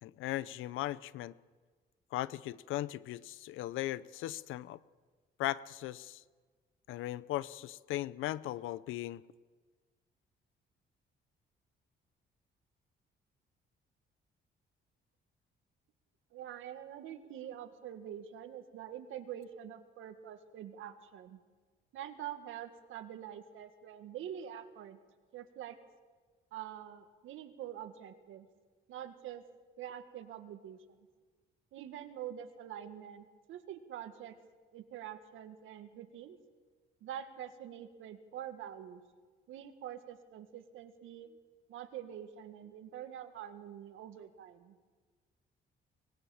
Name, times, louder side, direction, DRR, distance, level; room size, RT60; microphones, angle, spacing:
voice 1, 0.0-1.3 2.1-4.8 5.4-6.2 6.9-9.2, left 15 dB, 90° left, 18 dB, 0.7 m, -38 dB
voice 2, 16.3-21.4 21.9-25.0 25.3-25.8 26.5-28.5 28.9-29.4 29.8-30.8 31.7-34.4 34.7-36.4 37.0-39.0 39.5-41.4 41.7-44.7, right 10 dB, 85° right, 8 dB, 2.0 m, -45 dB
24.0 x 20.5 x 7.2 m, 1.4 s
cardioid pair, 90°, 20 cm